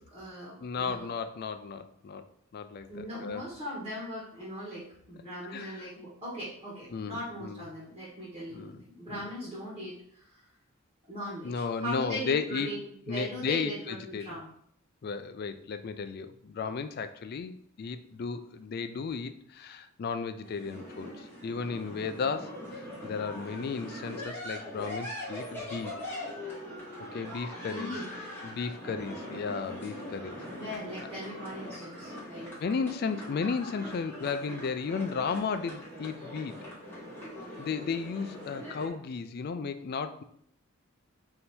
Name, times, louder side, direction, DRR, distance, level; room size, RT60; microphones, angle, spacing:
voice 1, 0.0-1.1 2.9-10.4 11.1-14.5 16.6-16.8 27.7-28.1 30.5-32.8, equal, 25° right, -7 dB, 1.3 m, -40 dB
voice 2, 0.6-2.3 2.5-3.4 5.5-5.9 6.9-7.7 8.5-8.8 9.1-9.3 11.4-12.7 13.1-14.3 15.0-25.9 27.1-27.9 28.4-30.4 32.6-36.6 37.6-40.2, left 5 dB, 45° left, 10 dB, 0.3 m, -34 dB
sound 1, 20.4-38.9, left 1 dB, 10° left, 1.2 m, -42 dB
3.4 x 2.8 x 4.3 m, 0.67 s
head